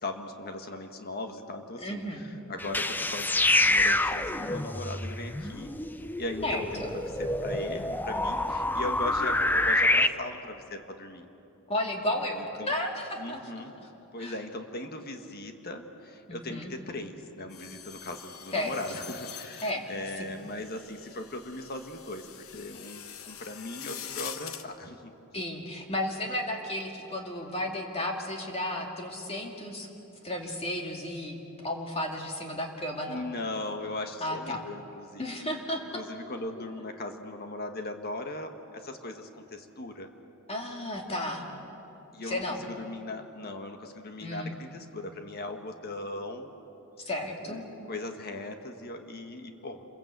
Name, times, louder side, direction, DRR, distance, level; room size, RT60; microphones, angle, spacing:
voice 1, 0.0-5.7 6.2-11.3 12.6-12.7 13.2-13.7 14.1-25.1 33.1-35.3 35.9-40.1 42.1-46.5 47.4-49.9, left 2 dB, 45° left, 5 dB, 1.5 m, -39 dB
voice 2, 1.8-2.2 6.4-6.9 11.7-13.9 14.2-14.4 16.3-16.7 18.5-18.8 19.6-19.8 20.2-20.3 25.3-29.9 30.2-33.3 34.2-34.6 35.2-35.8 36.6-36.7 40.5-41.5 42.2-42.7 44.2-44.6 47.1-47.6, left 1 dB, 30° left, 1 dB, 2.3 m, -33 dB
sound 1, 2.6-10.1, left 2 dB, 10° left, 0.6 m, -27 dB
sound 2, 17.5-24.6, left 9 dB, 75° left, 1.2 m, -44 dB
27.5 x 22.5 x 8.2 m, 3.0 s
head